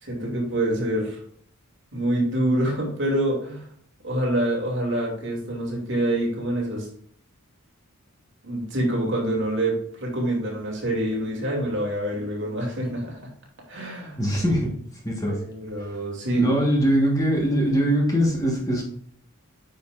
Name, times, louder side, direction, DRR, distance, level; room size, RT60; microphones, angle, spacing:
voice 1, 0.0-1.2 1.9-3.7 4.0-6.9 8.4-13.2 13.7-14.2 15.3-16.6, right 1 dB, 55° right, -2 dB, 2.5 m, -26 dB
voice 2, 14.2-14.7 15.0-15.3 16.3-18.8, equal, 15° left, -1 dB, 1.3 m, -22 dB
9.3 x 5.2 x 2.5 m, 0.63 s
head